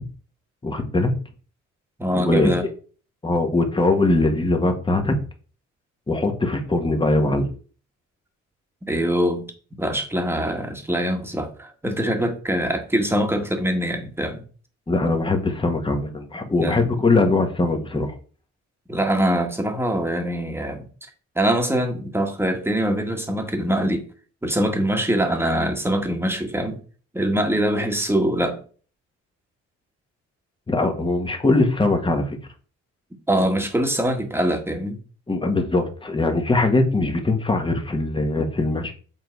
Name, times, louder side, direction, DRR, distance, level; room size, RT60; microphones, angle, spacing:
voice 1, 0.6-1.1 2.1-2.5 3.2-5.2 6.1-7.5 14.9-18.1 30.7-32.4 35.3-38.9, left 2 dB, 15° left, 4 dB, 1.6 m, -21 dB
voice 2, 2.0-2.6 8.9-9.5 9.8-14.4 16.6-17.0 18.9-20.9 21.4-24.1 24.4-26.8 27.1-28.6 33.3-35.0, right 1 dB, 10° right, 4 dB, 1.8 m, -23 dB
7.7 x 3.9 x 4.7 m, 0.40 s
cardioid pair, 90°, 30 cm